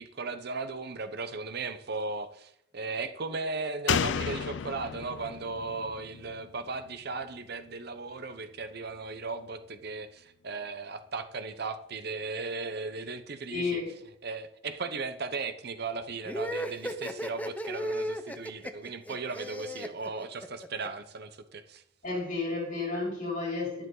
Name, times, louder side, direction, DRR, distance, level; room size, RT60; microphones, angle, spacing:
voice 1, 0.0-13.8 14.2-21.8, right 3 dB, 55° right, 11 dB, 0.9 m, -37 dB
Slam, 3.9-7.4 7.7-7.8, left 7 dB, 70° left, 0.4 m, -33 dB
voice 2, 13.5-13.9 22.0-23.9, left 3 dB, 45° left, -2 dB, 5.2 m, -32 dB
sound 1, 16.2-20.9, equal, 10° left, 0.8 m, -35 dB
11.5 x 11.0 x 3.9 m, 0.75 s
head